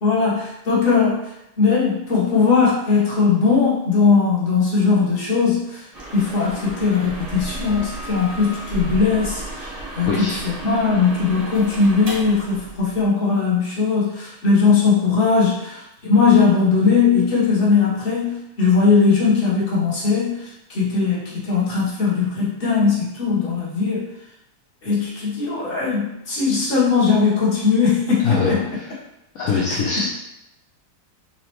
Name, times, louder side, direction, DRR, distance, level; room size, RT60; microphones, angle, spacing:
voice 1, 0.0-1.2 1.6-5.8 6.1-24.0 24.8-28.6 30.0-30.1, left 5 dB, 35° left, -7 dB, 1.1 m, -19 dB
sound 1, 5.9-13.1, right 1 dB, 40° right, 0.5 m, -33 dB
voice 2, 10.1-10.4 28.2-28.9 29.3-30.1, left 4 dB, 75° left, -4 dB, 0.8 m, -22 dB
4.1 x 2.8 x 3.0 m, 0.88 s
omnidirectional pair, 2.1 m